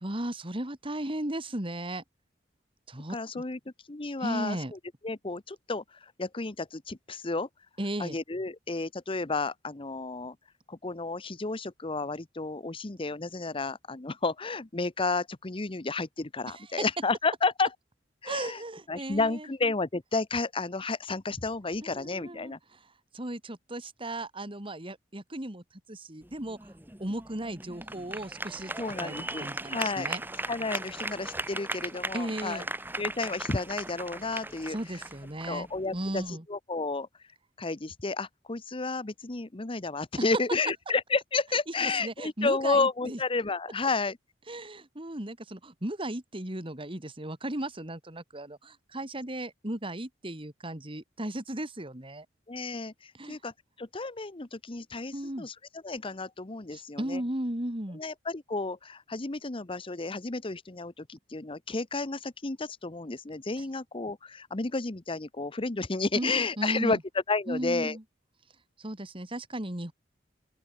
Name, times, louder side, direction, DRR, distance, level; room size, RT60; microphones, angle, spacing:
voice 1, 0.0-2.0 2.9-3.4 4.2-4.7 7.8-8.2 16.5-16.8 18.2-19.5 21.8-22.8 23.1-25.6 25.9-26.7 27.0-30.2 32.1-32.7 34.7-35.7 35.9-36.4 40.2-40.3 41.8-43.2 44.5-52.3 53.1-53.4 55.1-55.5 56.7-58.0 63.6-63.7 66.1-67.0 67.5-68.0 68.8-69.9, right 1 dB, 30° right, 2.8 m, -36 dB
voice 2, 3.1-3.6 3.9-4.8 5.0-7.5 8.0-10.3 10.7-17.7 18.2-18.6 18.9-22.6 28.8-30.1 30.5-32.6 33.0-34.8 35.5-37.1 37.6-44.2 52.5-53.5 53.8-55.5 55.8-57.2 57.9-67.0 67.3-68.0, left 3 dB, 30° left, 0.9 m, -31 dB
sound 1, 26.2-36.3, right 2 dB, 10° right, 4.9 m, -38 dB
open air
head